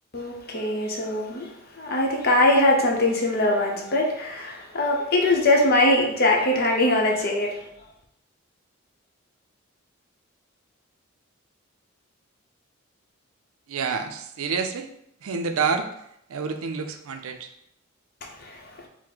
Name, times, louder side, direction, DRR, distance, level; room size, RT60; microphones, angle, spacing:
voice 1, 0.1-7.6 18.4-18.7, left 1 dB, 45° left, 0 dB, 0.8 m, -22 dB
voice 2, 13.7-14.9 15.2-15.9 16.3-17.5, right 5 dB, 80° right, 6 dB, 0.5 m, -28 dB
4.6 x 2.1 x 3.8 m, 0.75 s
head